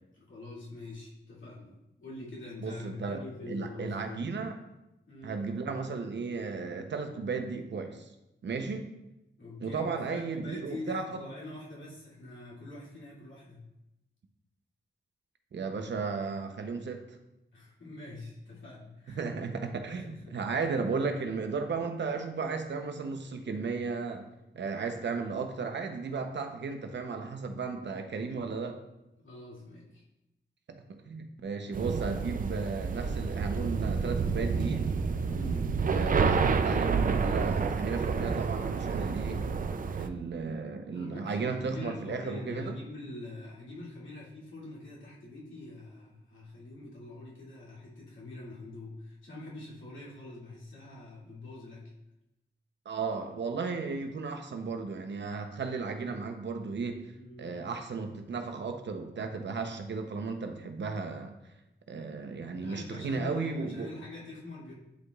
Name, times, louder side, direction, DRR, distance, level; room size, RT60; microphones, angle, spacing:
voice 1, 0.1-4.2 5.1-5.4 9.4-13.7 17.5-19.2 20.0-20.4 29.2-30.0 35.2-35.8 40.9-51.9 57.2-57.6 62.5-64.7, left 2 dB, 80° left, -6 dB, 2.4 m, -44 dB
voice 2, 2.6-3.2 3.5-4.6 5.2-8.1 8.4-9.0 9.6-11.2 15.5-17.0 19.1-24.2 24.5-28.8 31.1-34.9 35.8-39.5 39.9-42.7 52.9-57.1 57.4-61.3 61.9-63.9, right 4 dB, 65° right, 6 dB, 0.8 m, -34 dB
sound 1, 31.7-40.1, right 5 dB, 45° right, 0.4 m, -29 dB
10.5 x 4.8 x 2.4 m, 0.91 s
wide cardioid pair, 130°, 19 cm